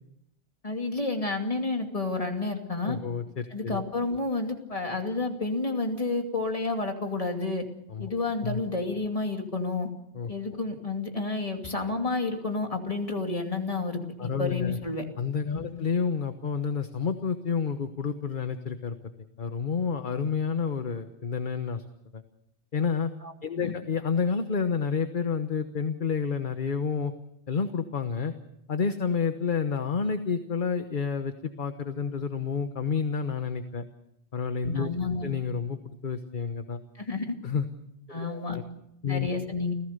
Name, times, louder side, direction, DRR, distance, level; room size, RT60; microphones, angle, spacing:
voice 1, 0.6-3.0 3.5-7.6 8.0-9.9 10.3-15.0 15.5-15.7 23.2-23.7 34.7-35.3 36.9-37.3 38.1-38.6 39.1-39.7, left 3 dB, 30° left, 3 dB, 2.6 m, -30 dB
voice 2, 2.8-3.8 7.9-8.1 8.4-8.6 10.1-10.3 14.2-14.8 15.2-19.0 19.4-21.8 22.1-22.2 22.7-23.1 23.4-27.1 27.5-28.3 28.7-33.8 34.3-34.9 35.2-36.8 37.4-37.7 38.1-38.6 39.0-39.3, left 6 dB, 45° left, 8 dB, 1.2 m, -29 dB
29.5 x 16.0 x 6.7 m, 0.79 s
omnidirectional pair, 1.2 m